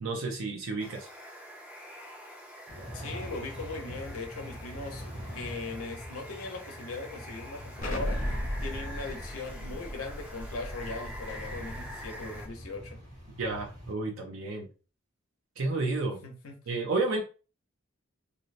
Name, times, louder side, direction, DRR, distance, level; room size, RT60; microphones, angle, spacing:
voice 1, 0.0-1.1 13.4-14.7 15.6-16.2 16.7-17.2, right 3 dB, 70° right, 1 dB, 0.5 m, -31 dB
Water, 0.8-12.5, equal, 5° right, 0.4 m, -46 dB
sound 1, 2.7-13.9, equal, 40° right, 1.0 m, -44 dB
voice 2, 2.9-5.0 5.3-8.2 8.6-13.0 16.2-16.6, left 3 dB, 90° left, 3 dB, 0.7 m, -39 dB
Explosion, 7.8-12.5, equal, 40° left, 0.6 m, -36 dB
2.6 x 2.0 x 2.5 m, 0.35 s
head